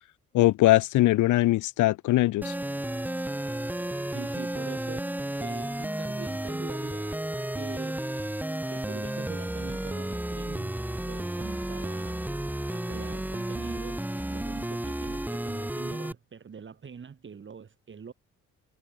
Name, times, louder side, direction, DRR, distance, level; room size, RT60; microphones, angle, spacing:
voice 1, 0.3-2.5, left 16 dB, 75° left, 0.7 m, -21 dB
sound 1, 2.4-16.1, right 1 dB, 5° right, 2.0 m, -32 dB
voice 2, 4.1-8.0 8.7-10.8 11.1-18.1, right 6 dB, 40° right, 2.9 m, -44 dB
cardioid pair, 90°, 30 cm